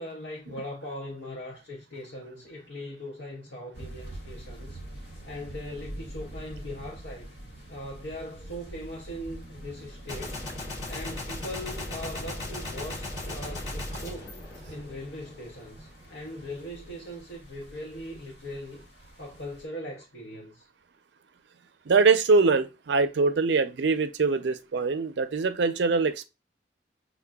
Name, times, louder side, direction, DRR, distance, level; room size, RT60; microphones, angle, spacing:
voice 1, 0.0-7.3 7.7-14.4 14.7-18.9 19.2-20.7, left 1 dB, 75° left, 0.8 m, -40 dB
sound 1, 3.7-19.6, right 1 dB, 60° left, 1.7 m, -45 dB
Gunshot gunfire, 10.1-15.3, left 1 dB, 40° left, 2.1 m, -37 dB
voice 2, 21.9-26.2, right 4 dB, 70° right, 0.5 m, -23 dB
6.5 x 2.2 x 2.2 m
head